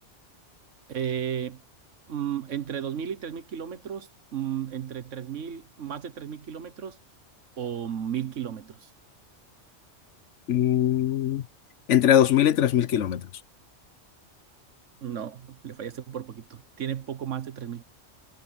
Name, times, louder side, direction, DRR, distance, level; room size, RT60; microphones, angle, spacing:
voice 1, 0.9-1.6 2.1-7.0 7.6-8.9 15.0-17.8, right 9 dB, 90° right, 1.5 m, -34 dB
voice 2, 10.5-11.4 11.9-13.2, left 10 dB, 80° left, 1.2 m, -21 dB
omnidirectional pair, 1.2 m